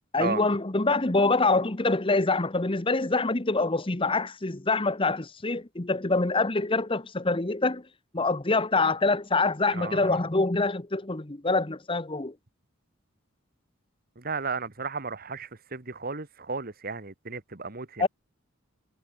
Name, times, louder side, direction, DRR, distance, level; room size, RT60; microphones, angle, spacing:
voice 1, 0.1-7.8 8.1-12.3 18.0-18.1, left 3 dB, 25° left, 1.1 m, -25 dB
voice 2, 9.7-10.2 14.2-18.1, right 4 dB, 45° right, 1.7 m, -34 dB
head